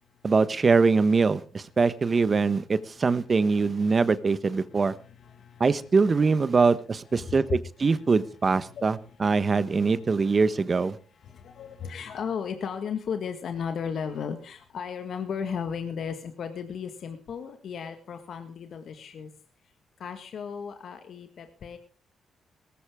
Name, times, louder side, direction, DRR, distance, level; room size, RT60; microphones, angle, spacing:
voice 1, 0.2-4.9 5.6-11.0, right 4 dB, 40° right, 15 dB, 1.2 m, -23 dB
voice 2, 4.6-5.9 7.1-7.4 7.9-8.1 8.6-9.6 9.9-10.1 11.1-19.3 20.0-21.8, left 6 dB, 65° left, 7 dB, 1.7 m, -36 dB
18.5 x 14.5 x 3.7 m, 0.39 s
supercardioid pair, 60°, 0 cm